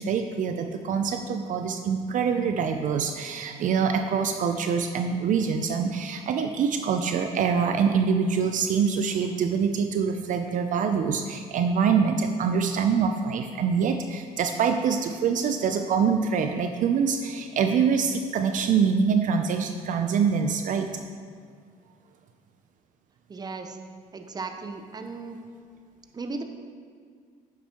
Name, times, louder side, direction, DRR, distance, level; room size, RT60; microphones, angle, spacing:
voice 1, 0.0-20.9, right 6 dB, 55° right, 6 dB, 0.5 m, -25 dB
voice 2, 23.3-23.8 24.1-25.4 26.1-26.4, right 3 dB, 25° right, 6 dB, 0.7 m, -36 dB
9.1 x 7.5 x 3.0 m, 2.1 s
cardioid pair, 90°, 16 cm